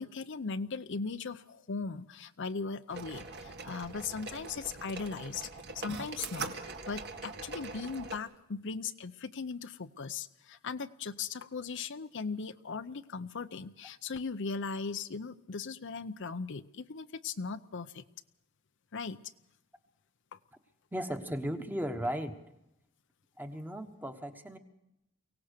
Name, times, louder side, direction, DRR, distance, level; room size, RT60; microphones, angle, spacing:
voice 1, 0.0-5.5 5.7-18.0 18.9-19.2 20.3-20.4, left 4 dB, 55° left, 11 dB, 0.6 m, -38 dB
sound 1, 2.9-8.2, right 4 dB, 50° right, 1.9 m, -42 dB
voice 2, 20.9-22.4 23.4-24.6, equal, 10° right, 7 dB, 1.3 m, -36 dB
23.5 x 17.5 x 6.7 m, 0.87 s
head